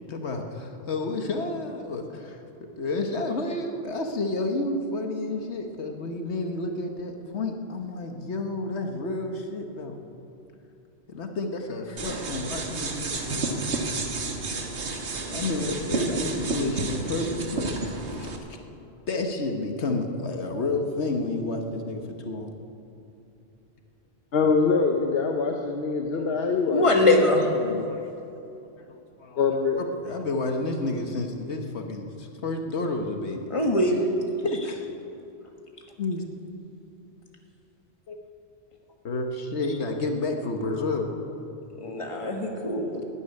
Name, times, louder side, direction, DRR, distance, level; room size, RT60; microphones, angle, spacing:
voice 1, 0.0-2.4 2.8-10.0 11.1-13.6 14.9-15.0 15.3-17.9 18.2-18.3 19.1-22.5 27.6-28.0 28.9-29.4 30.0-33.5 34.4-34.9 36.0-36.3 38.1-38.2 39.0-41.2, left 2 dB, 85° left, 4 dB, 1.5 m, -30 dB
sound 1, 12.0-18.4, right 3 dB, 85° right, 1.6 m, -31 dB
voice 2, 24.3-27.2 27.5-27.9 29.4-29.8, left 4 dB, 65° left, 2 dB, 1.1 m, -24 dB
voice 3, 26.7-27.5 33.5-33.9 41.8-43.0, left 2 dB, 30° left, 1 dB, 1.7 m, -22 dB
12.5 x 9.9 x 9.9 m, 2.8 s
omnidirectional pair, 1.1 m